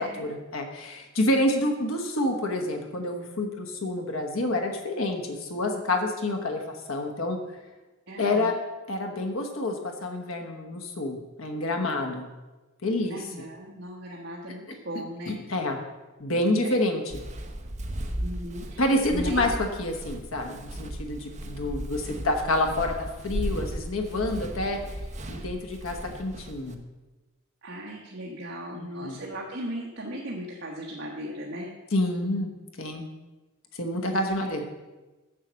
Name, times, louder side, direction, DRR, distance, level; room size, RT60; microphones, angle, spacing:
voice 1, 0.0-7.4 8.2-8.5 8.9-12.3 12.8-13.2 15.3-15.8 16.2-17.2 18.8-22.9 23.2-24.8 25.3-26.8 28.7-29.2 31.9-32.5 32.8-33.1 33.7-34.6, left 1 dB, 85° left, 4 dB, 1.1 m, -28 dB
voice 2, 8.1-8.6 13.1-15.4 16.6-16.7 18.2-18.8 19.1-19.4 27.6-31.7 34.3-34.6, equal, 60° right, -3 dB, 1.1 m, -37 dB
Walk footsteps, 17.1-26.7, right 1 dB, 35° right, 0.8 m, -36 dB
7.4 x 7.2 x 6.3 m, 1.2 s
head